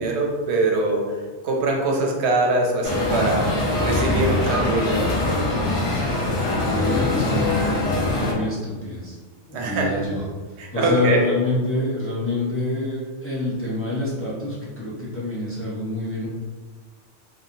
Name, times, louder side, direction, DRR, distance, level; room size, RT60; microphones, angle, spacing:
voice 1, 0.0-3.5 3.8-5.3 9.5-9.9 10.6-11.2, right 2 dB, 75° right, 0 dB, 0.8 m, -23 dB
sound 1, 2.8-8.3, left 2 dB, 80° left, 1.0 m, -22 dB
voice 2, 6.6-7.6 8.0-9.2 9.5-10.2 10.7-16.3, left 1 dB, 20° left, -8 dB, 0.3 m, -26 dB
2.8 x 2.2 x 2.5 m, 1.4 s
omnidirectional pair, 1.2 m